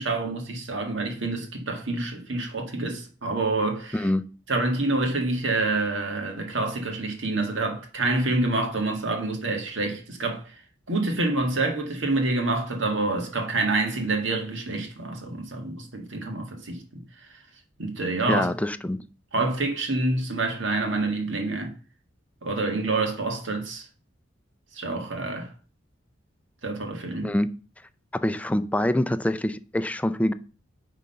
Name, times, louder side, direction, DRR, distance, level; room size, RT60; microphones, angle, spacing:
voice 1, 0.0-4.1 4.5-10.6 10.9-17.0 17.8-18.5 19.3-21.7 22.4-23.9 24.7-25.5 26.6-27.3, right 2 dB, 75° right, 1.8 m, -27 dB
voice 2, 3.9-4.2 18.3-19.0 27.2-27.5 28.1-30.3, left 1 dB, 5° left, 0.4 m, -25 dB
9.3 x 3.7 x 5.7 m
head